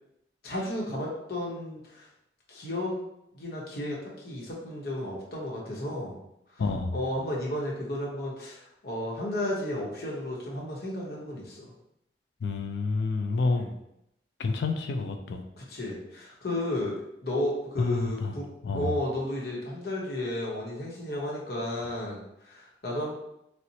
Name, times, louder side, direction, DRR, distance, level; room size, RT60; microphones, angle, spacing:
voice 1, 0.4-2.1 2.5-2.9 3.3-6.2 6.5-6.6 6.9-11.7 13.5-13.7 15.6-18.5 18.7-23.1, left 1 dB, 55° left, -4 dB, 0.8 m, -33 dB
voice 2, 6.6-7.0 12.4-13.7 14.4-15.4 17.8-18.4 18.6-18.9, left 3 dB, 75° left, 5 dB, 0.4 m, -28 dB
4.2 x 2.1 x 2.7 m, 0.81 s
head